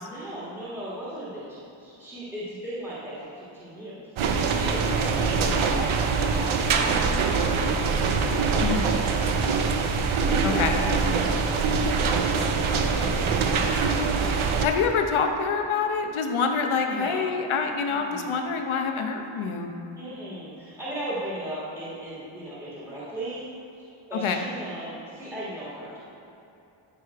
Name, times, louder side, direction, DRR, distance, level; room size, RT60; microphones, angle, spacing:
voice 1, 0.0-8.6 10.3-11.0 11.3-13.6 16.9-17.3 17.9-18.4 20.0-23.4 23.8-26.0, right 1 dB, 5° right, -9 dB, 1.7 m, -38 dB
sound 1, 4.2-14.6, right 4 dB, 80° right, 0.9 m, -24 dB
voice 2, 8.6-8.9 10.4-10.7 14.6-19.7 24.2-24.4, left 5 dB, 85° left, 4 dB, 0.9 m, -26 dB
12.5 x 5.0 x 4.7 m, 2.9 s
wide cardioid pair, 155°, 48 cm